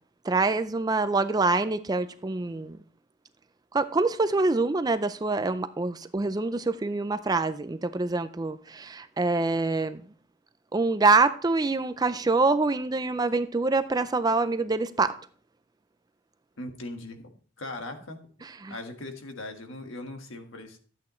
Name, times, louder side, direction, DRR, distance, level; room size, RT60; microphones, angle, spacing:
voice 1, 0.2-2.8 3.7-10.0 10.7-15.1 18.4-18.7, right 3 dB, 20° right, 0.4 m, -25 dB
voice 2, 16.6-17.3 17.6-18.2 18.7-20.8, left 2 dB, 70° left, 1.6 m, -39 dB
13.0 x 8.5 x 3.1 m
head